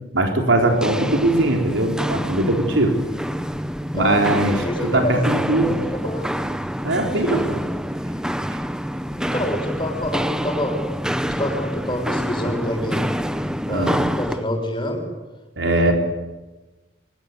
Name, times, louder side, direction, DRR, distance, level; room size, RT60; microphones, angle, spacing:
voice 1, 0.1-2.9 3.9-5.7 6.8-7.6 8.5-8.6 13.7-14.0 15.6-15.9, right 1 dB, 85° right, 2 dB, 4.2 m, -20 dB
Walk footsteps, 0.6-14.4, equal, 5° right, 0.9 m, -27 dB
voice 2, 3.9-6.4 7.2-7.5 9.2-10.8 11.2-13.0 13.7-15.1 15.7-15.9, left 1 dB, 25° left, 3 dB, 6.6 m, -27 dB
26.0 x 23.0 x 8.3 m, 1.1 s
head